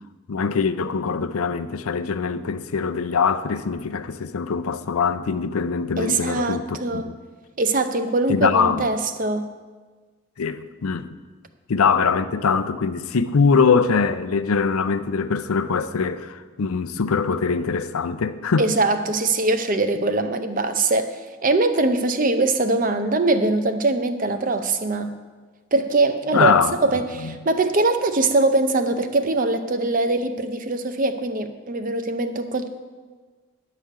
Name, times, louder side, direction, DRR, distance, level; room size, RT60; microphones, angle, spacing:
voice 1, 0.3-7.1 8.3-8.9 10.4-11.2 11.7-18.7 26.3-26.7 27.2-27.3, left 5 dB, 85° left, 0.5 m, -22 dB
voice 2, 6.0-7.1 7.6-9.5 18.6-25.1 25.7-32.7, right 2 dB, 40° right, 0.6 m, -22 dB
10.5 x 5.0 x 8.1 m
head